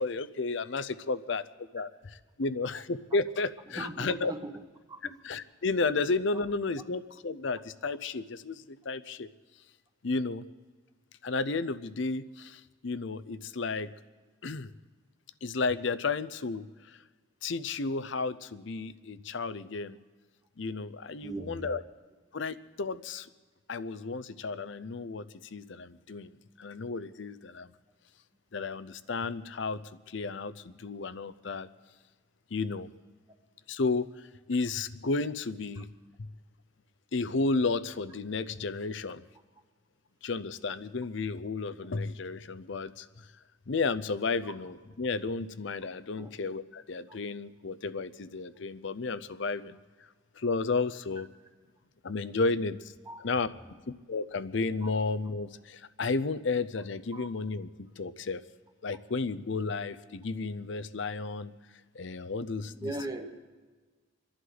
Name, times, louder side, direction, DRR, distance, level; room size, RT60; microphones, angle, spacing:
voice 1, 0.0-4.3 5.2-9.3 10.0-10.4 11.2-13.9 14.4-14.7 15.4-17.0 17.4-20.0 20.6-21.8 22.3-23.3 23.7-25.3 25.5-27.7 28.5-29.8 30.1-31.7 32.5-32.9 33.7-34.1 34.5-35.9 36.2-36.3 37.1-39.2 40.2-43.3 43.7-49.8 50.4-51.3 52.0-52.9 53.2-53.5 54.1-57.7 58.0-58.4 58.8-61.5 61.9-62.9, left 3 dB, 60° left, 15 dB, 0.6 m, -32 dB
voice 2, 3.7-4.6 4.9-5.1 21.2-21.8 44.4-44.5 46.2-46.3 53.0-53.2 54.8-54.9 57.1-57.3 62.7-63.3, right 1 dB, 20° right, 5 dB, 1.2 m, -39 dB
27.5 x 11.0 x 4.0 m, 1.4 s
head